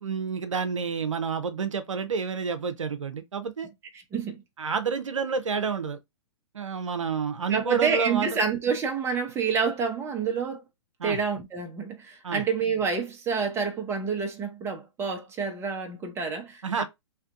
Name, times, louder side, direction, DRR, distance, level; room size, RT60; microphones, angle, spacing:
voice 1, 0.0-3.7 4.6-6.0 6.5-8.3 11.0-11.2 12.2-12.4 16.6-16.8, right 6 dB, 80° right, 0.6 m, -29 dB
voice 2, 4.1-4.4 7.5-10.6 11.0-16.8, right 5 dB, 15° right, 0.7 m, -28 dB
3.3 x 2.8 x 2.4 m
figure-of-eight pair, 115°, 16 cm